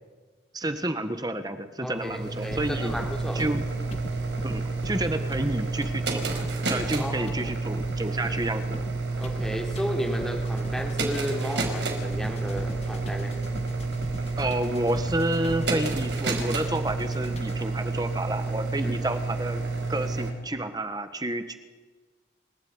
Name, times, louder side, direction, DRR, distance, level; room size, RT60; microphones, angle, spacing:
voice 1, 0.5-2.9 3.3-3.6 4.4-8.8 14.4-19.6 19.9-21.5, right 1 dB, 20° right, 8 dB, 1.5 m, -30 dB
voice 2, 1.8-3.4 7.0-7.3 9.2-13.4 18.8-19.0, equal, 5° left, 1 dB, 3.7 m, -33 dB
sound 1, 1.8-20.3, right 3 dB, 65° right, 5.0 m, -30 dB
sound 2, 2.5-17.8, equal, 35° left, 2.2 m, -41 dB
29.0 x 16.0 x 9.7 m, 1.3 s
head